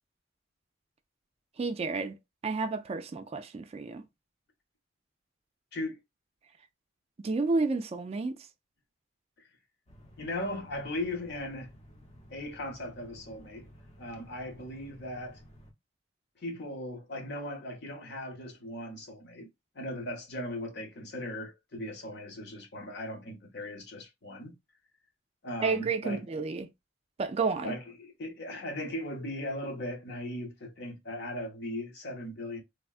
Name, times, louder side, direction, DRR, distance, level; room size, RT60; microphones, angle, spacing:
voice 1, 1.6-2.2 2.4-4.0 7.2-8.3 25.6-26.7 27.2-27.7, right 4 dB, 30° right, 0.3 m, -30 dB
sound 1, 9.9-15.7, equal, 35° left, 0.7 m, -54 dB
voice 2, 10.2-11.7 12.3-13.7 14.0-15.4 16.4-19.5 19.7-24.5 25.4-26.2 27.6-32.6, left 1 dB, 60° left, 0.9 m, -38 dB
3.5 x 2.2 x 2.4 m
head